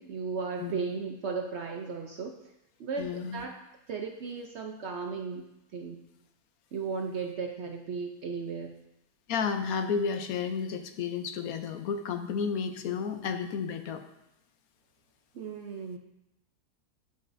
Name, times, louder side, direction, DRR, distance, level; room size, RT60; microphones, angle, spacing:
voice 1, 0.0-2.5 2.8-3.6 3.9-5.4 5.7-6.0 6.7-8.7 15.3-16.0, right 5 dB, 65° right, 3 dB, 0.7 m, -35 dB
voice 2, 3.0-3.4 9.3-14.0, left 6 dB, 75° left, 8 dB, 1.0 m, -32 dB
12.5 x 5.4 x 2.6 m, 0.90 s
omnidirectional pair, 1.7 m